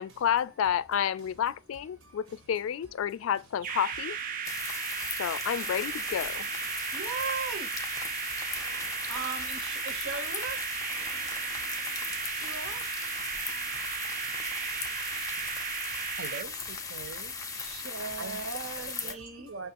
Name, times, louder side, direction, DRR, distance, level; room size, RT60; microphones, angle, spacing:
voice 1, 0.0-4.2 5.2-6.5, left 9 dB, 75° left, 0.3 m, -30 dB
sound 1, 3.6-16.4, right 7 dB, 45° right, 0.3 m, -35 dB
sound 2, 4.4-19.1, left 5 dB, 15° left, 0.5 m, -38 dB
voice 2, 4.4-5.1 6.7-16.1 17.5-19.5, right 5 dB, 90° right, 1.0 m, -41 dB
voice 3, 16.2-17.3 18.2-18.4 18.8-19.7, right 5 dB, 70° right, 0.7 m, -42 dB
6.1 x 2.3 x 2.9 m
head